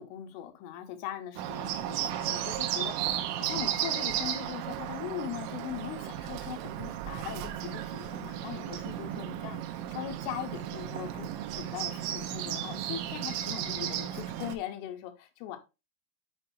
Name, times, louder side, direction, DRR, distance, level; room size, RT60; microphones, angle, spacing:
voice 1, 0.0-15.6, left 11 dB, 85° left, 3.3 m, -40 dB
Bird, 1.4-14.6, right 11 dB, 90° right, 3.2 m, -34 dB
8.5 x 4.5 x 2.6 m
omnidirectional pair, 5.5 m